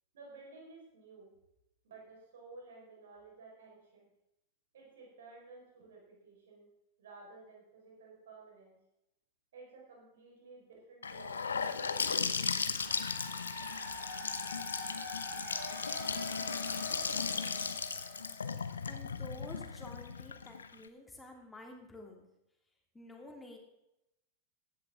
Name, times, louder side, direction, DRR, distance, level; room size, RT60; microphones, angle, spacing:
voice 1, 0.1-1.3 1.8-4.1 4.7-6.7 7.0-8.8 9.5-12.6, right 3 dB, 60° right, -2 dB, 4.7 m, -54 dB
Gurgling / Sink (filling or washing) / Bathtub (filling or washing), 11.0-20.9, left 5 dB, 70° left, 0.8 m, -36 dB
sound 1, 12.7-18.8, left 1 dB, 90° right, 5.5 m, -45 dB
voice 2, 18.9-22.3 22.9-23.6, left 1 dB, 10° left, 1 dB, 2.9 m, -50 dB
15.5 x 11.0 x 3.7 m, 0.85 s
figure-of-eight pair, 90°, 0 cm